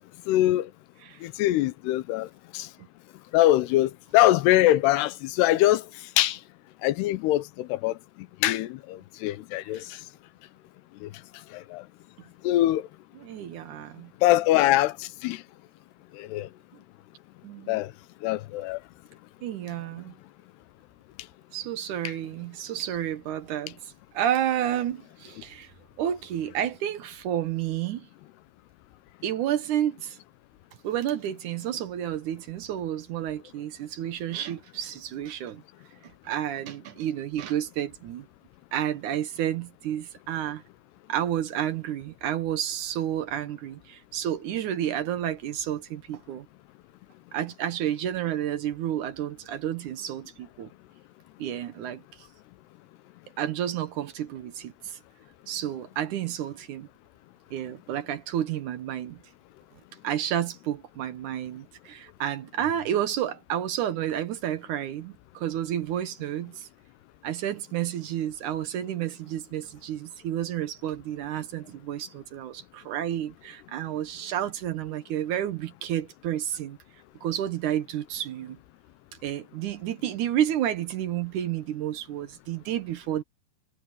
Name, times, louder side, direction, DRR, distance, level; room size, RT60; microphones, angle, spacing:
voice 1, 0.3-0.7 1.2-2.3 2.5-2.7 3.3-5.8 6.2-6.4 6.8-7.9 8.4-10.0 11.0-11.1 11.5-11.8 12.4-12.9 14.2-15.4 16.2-16.5 17.7-17.9 18.2-18.8, left 15 dB, 85° left, 2.9 m, -23 dB
voice 2, 13.2-14.1 17.4-17.8 19.4-20.1 21.5-25.7 26.0-28.1 29.2-30.2 30.8-35.6 36.2-38.3 38.7-40.6 41.1-46.5 47.3-50.7 51.4-52.0 53.4-55.0 55.5-56.9 57.5-59.2 60.0-66.7 67.2-76.8 77.2-78.6 79.2-83.2, right 11 dB, 70° right, 2.0 m, -30 dB
omnidirectional pair, 4.6 m